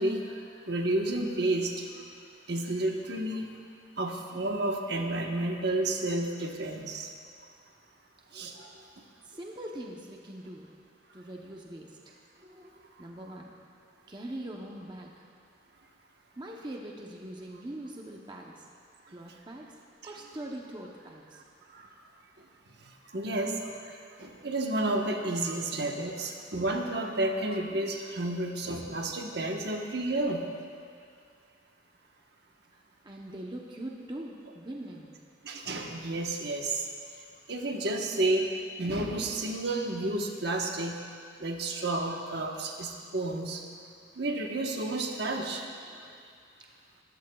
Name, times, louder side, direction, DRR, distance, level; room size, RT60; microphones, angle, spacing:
voice 1, 0.0-1.9 2.5-3.5 4.0-7.1 8.3-8.7 21.7-21.9 22.8-23.9 24.2-30.4 35.4-36.9 37.5-38.5 38.8-40.9 41.4-43.6 44.2-45.6, right 2 dB, 60° right, 2 dB, 1.2 m, -31 dB
voice 2, 9.2-10.7 11.1-13.5 14.1-15.3 16.4-18.7 19.1-19.8 20.0-21.4 32.7-35.1 45.9-46.1 46.6-46.7, right 1 dB, 25° right, -1 dB, 0.8 m, -42 dB
21.0 x 14.0 x 2.3 m, 2.2 s
head